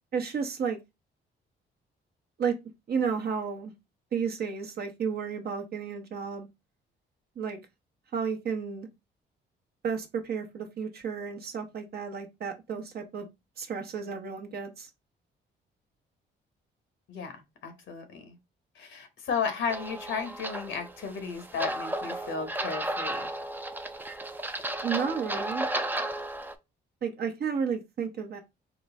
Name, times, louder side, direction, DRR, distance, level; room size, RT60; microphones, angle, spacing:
voice 1, 0.1-0.8 2.4-2.6 2.9-3.7 4.1-6.5 7.4-7.6 8.1-8.9 9.8-13.3 13.6-14.9 24.8-25.7 27.0-28.4, right 6 dB, 50° right, 0.8 m, -32 dB
voice 2, 17.1-18.4 18.8-23.3, left 6 dB, 75° left, 1.0 m, -34 dB
sound 1, 19.7-26.5, right 1 dB, 10° right, 0.4 m, -34 dB
3.8 x 2.1 x 3.4 m
cardioid pair, 90°, 20 cm